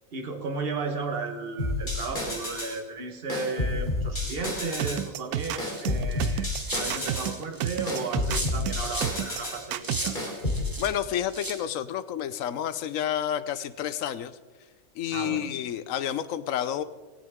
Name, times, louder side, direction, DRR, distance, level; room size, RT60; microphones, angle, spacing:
voice 1, 0.1-6.5 6.7-10.4 15.1-15.6, right 4 dB, 40° right, 5 dB, 1.5 m, -34 dB
sound 1, 1.6-2.8 3.3-5.1 5.6-7.3 7.9-9.6 10.2-10.7, left 2 dB, 30° left, 3.1 m, -30 dB
sound 2, 4.8-10.3, right 11 dB, 80° right, 1.1 m, -31 dB
sound 3, 5.4-9.1 9.4-10.9 11.3-11.6, right 1 dB, 15° right, 1.5 m, -36 dB
voice 2, 10.8-14.4 14.9-16.8, left 10 dB, 65° left, 13 dB, 1.0 m, -30 dB
17.5 x 16.5 x 3.6 m, 1.3 s
omnidirectional pair, 1.6 m